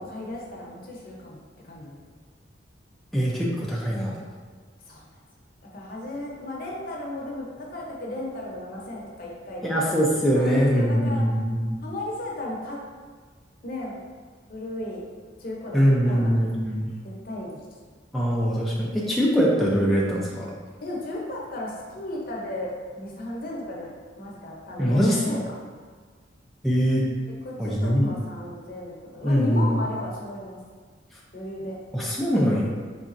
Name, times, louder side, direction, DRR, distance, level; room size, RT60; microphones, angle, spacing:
voice 1, 0.0-2.0 4.9-5.0 5.7-9.7 10.3-11.2 11.8-12.8 13.6-14.0 14.5-15.0 15.4-16.3 17.0-17.5 20.8-25.4 27.4-30.6 31.3-31.7, left 1 dB, 50° left, -3 dB, 0.7 m, -34 dB
voice 2, 3.1-4.1 9.6-11.8 15.7-16.9 18.1-20.5 24.8-25.2 26.6-27.1 27.6-28.1 29.2-29.7 31.9-32.7, equal, ahead, -6 dB, 0.4 m, -22 dB
4.0 x 3.4 x 2.5 m, 1.5 s
head